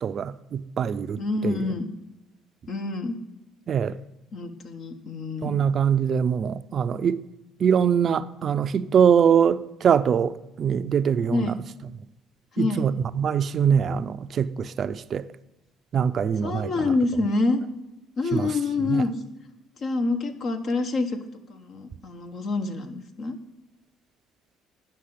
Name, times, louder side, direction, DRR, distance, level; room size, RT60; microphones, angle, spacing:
voice 1, 0.0-1.6 3.7-4.0 5.4-7.2 7.6-11.5 12.6-15.2 15.9-16.7 18.3-18.5 18.9-19.0, right 7 dB, 50° right, 0.4 m, -23 dB
voice 2, 1.2-1.9 2.7-3.2 4.3-5.6 11.3-11.6 12.5-12.9 16.4-17.6 18.2-19.1 19.8-21.2 21.5-23.4, left 3 dB, 55° left, 1.3 m, -27 dB
9.9 x 5.9 x 7.6 m
supercardioid pair, 70°, 0 cm